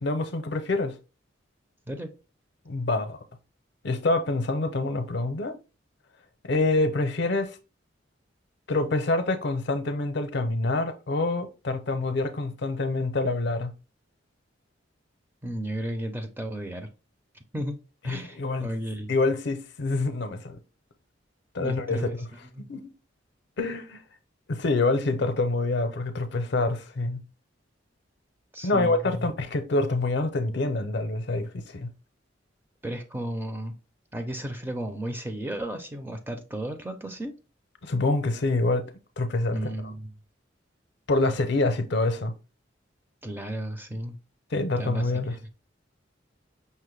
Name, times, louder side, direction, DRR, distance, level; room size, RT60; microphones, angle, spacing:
voice 1, 0.0-0.9 2.7-3.2 3.8-5.6 6.4-7.6 8.7-13.7 18.1-18.7 19.1-20.6 21.5-22.3 22.7-22.8 23.6-24.0 24.5-27.2 28.6-31.9 37.8-38.9 39.2-39.7 41.1-42.3 44.5-45.3, left 2 dB, 60° left, 0.5 m, -26 dB
voice 2, 15.4-16.9 17.3-17.8 18.0-19.1 21.6-22.2 22.6-22.7 28.5-29.3 32.8-33.8 34.1-37.3 39.5-40.1 43.2-44.2 44.8-45.5, right 1 dB, 10° right, 0.4 m, -34 dB
5.5 x 2.1 x 3.1 m
head